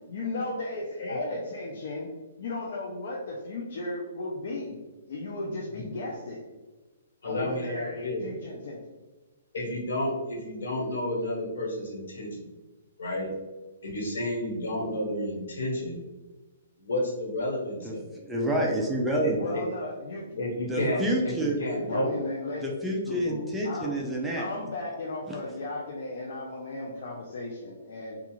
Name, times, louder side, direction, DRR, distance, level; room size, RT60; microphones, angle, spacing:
voice 1, 0.1-2.1 2.4-4.8 5.1-6.4 7.2-8.8 19.4-20.4 20.9-21.0 21.7-22.7 23.1-23.9 24.4-28.2, left 2 dB, 60° left, -3 dB, 0.5 m, -35 dB
voice 2, 7.2-8.2 9.5-12.5 13.0-13.3 13.8-16.0 16.8-18.0 19.2-19.3 20.4-21.3 21.6-22.1, left 1 dB, 85° left, -2 dB, 1.2 m, -31 dB
voice 3, 17.8-19.5 20.7-21.6 22.6-24.4, right 1 dB, 5° right, -3 dB, 0.3 m, -28 dB
2.4 x 2.3 x 2.9 m, 1.2 s
hypercardioid pair, 165°, 0 cm